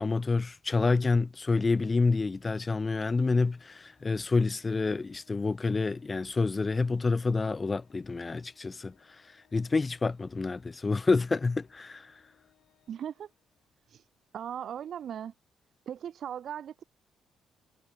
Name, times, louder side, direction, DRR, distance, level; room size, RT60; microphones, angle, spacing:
voice 1, 0.0-8.9 9.5-12.1, left 3 dB, 25° left, 0.4 m, -28 dB
Organ, 3.1-13.8, left 13 dB, 80° left, 5.4 m, -69 dB
voice 2, 12.9-13.3 13.9-14.1 14.3-15.3 15.9-16.8, right 9 dB, 65° right, 0.9 m, -38 dB
cardioid pair, 90°, 0 cm